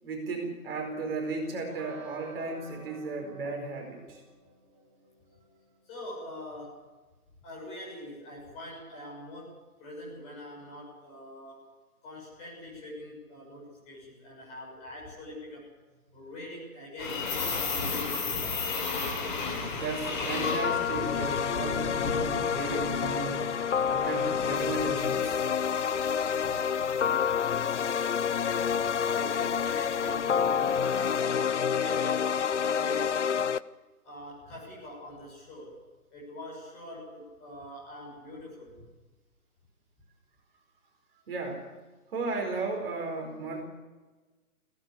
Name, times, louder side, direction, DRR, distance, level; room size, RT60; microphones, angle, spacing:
voice 1, 0.0-4.2 19.7-23.5 23.9-25.4 41.3-41.7 42.1-43.6, right 3 dB, 40° right, 2 dB, 4.7 m, -35 dB
sound 1, 0.7-5.7, right 2 dB, 20° right, 1.9 m, -51 dB
voice 2, 5.8-6.8 7.4-11.7 12.0-15.7 16.1-18.8 27.1-27.4 28.5-31.4 31.7-32.3 32.7-33.4 34.0-35.8 36.1-38.8, left 1 dB, 15° left, -4 dB, 6.5 m, -43 dB
sound 2, 17.0-31.0, left 4 dB, 30° left, 3.6 m, -36 dB
sound 3, 20.4-33.6, left 7 dB, 50° left, 0.6 m, -28 dB
21.0 x 17.5 x 8.5 m, 1.3 s
hypercardioid pair, 165°, 45 cm